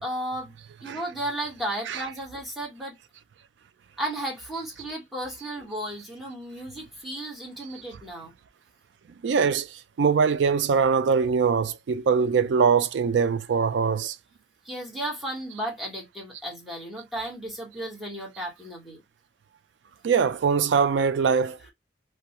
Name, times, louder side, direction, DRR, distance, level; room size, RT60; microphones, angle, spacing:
voice 1, 0.0-0.5 0.8-3.0 4.0-8.3 14.6-19.0, right 1 dB, ahead, 1.2 m, -34 dB
voice 2, 9.2-14.2 20.0-21.7, right 6 dB, 80° right, 0.4 m, -23 dB
2.3 x 2.3 x 2.8 m
head